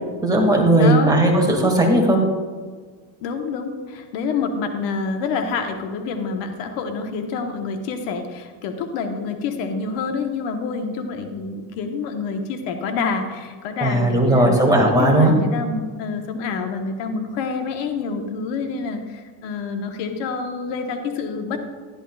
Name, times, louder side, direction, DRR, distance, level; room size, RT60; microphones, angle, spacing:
voice 1, 0.2-2.2 13.8-15.3, right 1 dB, 10° right, -1 dB, 2.0 m, -16 dB
voice 2, 0.8-1.2 3.2-14.6 14.9-21.6, left 4 dB, 85° left, 5 dB, 1.2 m, -27 dB
12.5 x 11.0 x 2.4 m, 1.5 s
cardioid pair, 125°, 42 cm